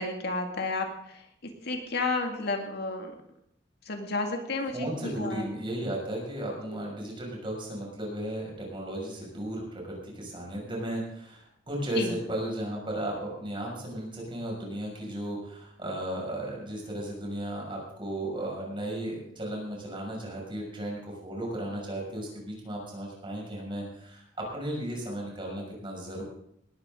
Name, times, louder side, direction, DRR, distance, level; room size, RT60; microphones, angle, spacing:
voice 1, 0.0-3.1 3.9-5.4 6.7-6.8 11.9-12.2, left 3 dB, 60° left, 4 dB, 2.1 m, -32 dB
voice 2, 4.7-26.2, right 1 dB, 25° right, -2 dB, 6.4 m, -35 dB
19.5 x 13.0 x 3.9 m, 0.72 s
head